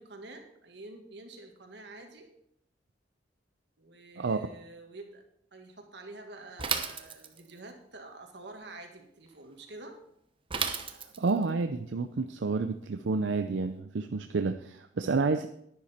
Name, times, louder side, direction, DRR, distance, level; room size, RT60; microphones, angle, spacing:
voice 1, 0.0-2.3 3.8-5.2 5.5-10.0 14.9-15.2, right 2 dB, 70° right, 4 dB, 1.9 m, -48 dB
Bicycle / Mechanisms, 6.6-7.6 10.5-11.4, right 6 dB, 30° right, 0.9 m, -33 dB
voice 2, 11.2-15.5, right 4 dB, 90° right, 8 dB, 0.5 m, -29 dB
10.5 x 10.0 x 4.4 m, 0.75 s
head